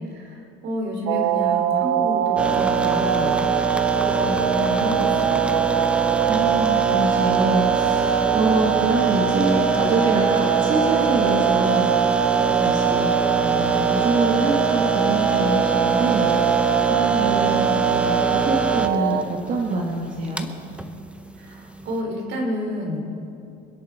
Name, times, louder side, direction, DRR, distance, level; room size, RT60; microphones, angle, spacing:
voice 1, 0.1-3.4 3.9-5.6 21.3-23.0, equal, 60° right, 0 dB, 4.5 m, -30 dB
sound 1, 1.1-19.2, right 10 dB, 80° right, 0.8 m, -22 dB
sound 2, 2.4-22.0, right 1 dB, 5° right, 0.9 m, -26 dB
voice 2, 6.3-16.5 16.9-20.5, right 2 dB, 40° right, -2 dB, 2.0 m, -25 dB
26.0 x 10.5 x 4.4 m, 2.6 s
supercardioid pair, 110°, 21 cm